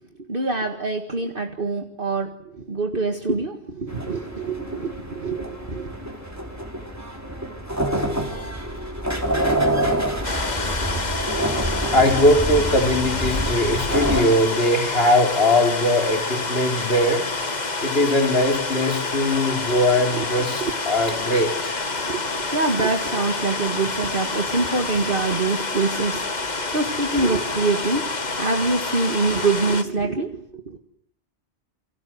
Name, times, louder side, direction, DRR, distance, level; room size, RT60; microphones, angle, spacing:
voice 1, 0.3-5.9 20.2-20.3 20.6-20.7 21.9-30.8, right 3 dB, 50° right, 4 dB, 2.1 m, -25 dB
sound 1, 3.9-14.2, right 1 dB, 15° right, 3.8 m, -27 dB
sound 2, 10.2-29.8, left 3 dB, 40° left, 1.7 m, -28 dB
voice 2, 11.7-17.3 17.8-21.8, left 1 dB, 60° left, 4 dB, 4.2 m, -20 dB
29.0 x 25.0 x 7.9 m, 0.66 s
omnidirectional pair, 1.2 m